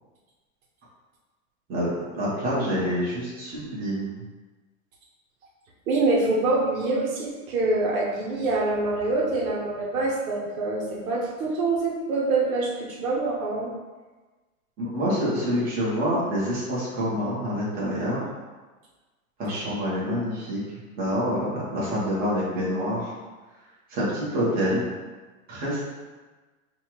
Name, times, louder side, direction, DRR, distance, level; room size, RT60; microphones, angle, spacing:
voice 1, 1.7-4.1 14.8-18.2 19.4-20.6 21.0-23.1 23.9-24.8 25.5-25.8, equal, 20° right, -8 dB, 1.3 m, -27 dB
voice 2, 5.9-13.7, right 2 dB, 75° right, -3 dB, 1.1 m, -25 dB
5.4 x 2.5 x 3.0 m, 1.3 s
supercardioid pair, 150°, 42 cm